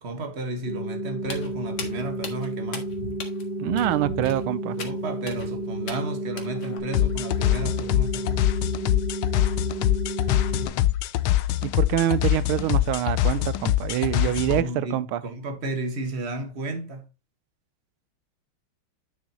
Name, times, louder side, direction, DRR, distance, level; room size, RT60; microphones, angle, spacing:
voice 1, 0.0-2.9 4.8-8.4 14.0-17.0, right 2 dB, 35° right, 1.6 m, -33 dB
sound 1, 0.7-10.7, right 1 dB, 60° right, 2.3 m, -32 dB
Walk footsteps, 1.2-6.8, left 2 dB, 55° left, 2.0 m, -39 dB
voice 2, 3.6-4.8 11.6-15.2, right 12 dB, 90° right, 1.5 m, -25 dB
sound 2, 6.9-14.6, left 14 dB, 90° left, 1.5 m, -24 dB
9.8 x 6.4 x 2.9 m
omnidirectional pair, 2.3 m